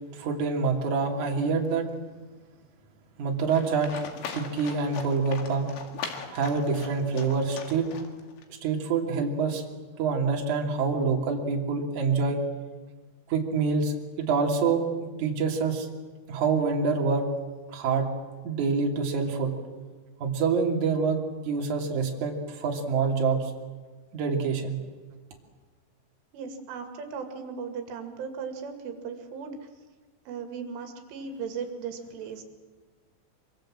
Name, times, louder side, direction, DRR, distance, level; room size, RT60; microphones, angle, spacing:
voice 1, 0.1-1.9 3.2-3.9 4.3-5.7 6.3-7.9 8.6-9.6 10.0-12.4 13.3-14.8 15.2-15.9 16.3-17.3 17.7-18.1 18.4-19.5 20.2-21.2 21.5-23.4 24.1-24.8, right 5 dB, 45° right, 0 dB, 3.8 m, -26 dB
Livestock farm animals working animals, 3.5-8.4, left 6 dB, 70° left, 4.2 m, -40 dB
voice 2, 26.3-29.7 30.3-32.4, right 6 dB, 85° right, 5 dB, 4.7 m, -37 dB
25.5 x 25.0 x 7.7 m, 1.4 s
omnidirectional pair, 5.5 m